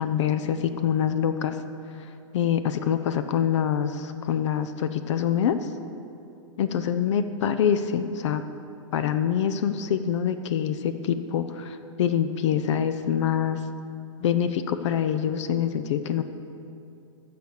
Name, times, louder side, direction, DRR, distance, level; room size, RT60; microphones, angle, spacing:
voice 1, 0.0-1.6 2.3-5.7 6.6-8.4 8.9-13.6 14.2-16.2, left 8 dB, 60° left, 11 dB, 0.6 m, -25 dB
14.5 x 4.9 x 7.0 m, 2.7 s
hypercardioid pair, 115°, 17 cm